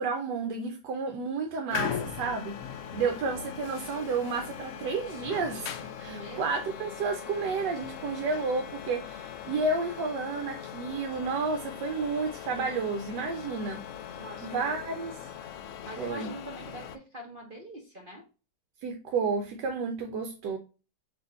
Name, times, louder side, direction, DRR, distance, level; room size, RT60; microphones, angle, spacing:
voice 1, 0.0-13.8 14.4-15.1 16.0-16.3 18.8-20.6, right 4 dB, 80° right, 1.2 m, -31 dB
sound 1, 1.7-17.0, left 8 dB, 85° left, 0.7 m, -40 dB
voice 2, 6.1-6.6 14.2-14.7 15.8-18.2, right 1 dB, 45° right, 0.7 m, -44 dB
4.3 x 3.0 x 4.0 m
omnidirectional pair, 1.9 m